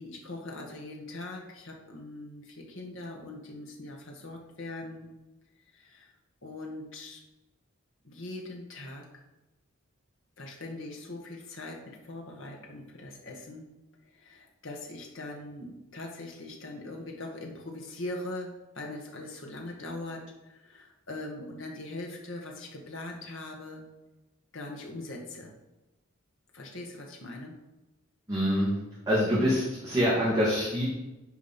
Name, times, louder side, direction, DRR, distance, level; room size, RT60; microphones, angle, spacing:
voice 1, 0.0-5.1 5.7-6.1 6.4-7.2 8.0-9.1 10.4-13.6 14.0-23.8 24.5-25.5 26.5-27.6, left 2 dB, 65° left, 1 dB, 1.8 m, -41 dB
voice 2, 28.3-28.8 29.1-30.8, equal, 15° right, -8 dB, 2.5 m, -25 dB
9.4 x 5.0 x 6.0 m, 1.0 s
head